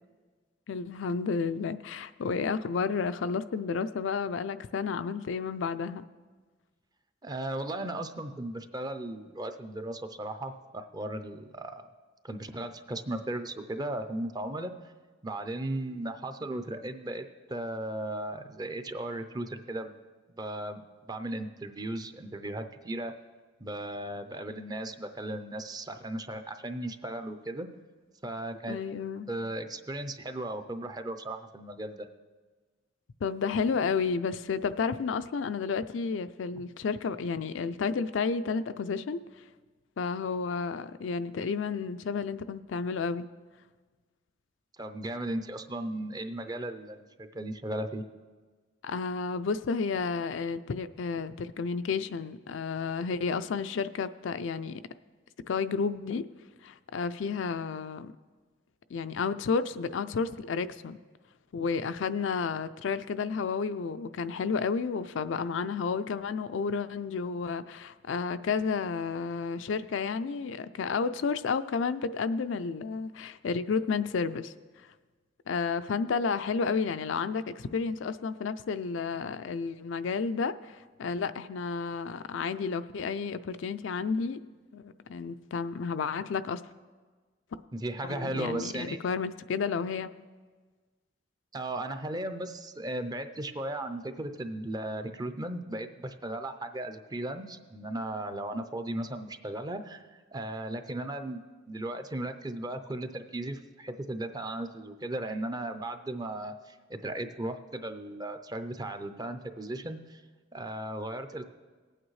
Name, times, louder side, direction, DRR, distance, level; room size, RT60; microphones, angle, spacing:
voice 1, 0.7-6.1 28.7-29.3 33.2-39.2 40.0-43.3 48.8-54.8 55.5-56.2 56.6-58.1 58.9-61.0 61.5-74.5 75.5-84.4 84.7-86.6 88.1-90.1, left 5 dB, 70° left, 11 dB, 0.4 m, -31 dB
voice 2, 7.2-11.9 12.2-14.7 15.2-20.0 20.4-23.1 23.6-27.7 28.2-28.8 29.3-32.1 36.5-36.6 44.8-48.0 87.7-89.0 91.5-100.0 100.3-110.2 110.5-111.4, right 1 dB, 20° right, 8 dB, 0.5 m, -36 dB
19.0 x 8.9 x 3.2 m, 1.4 s
head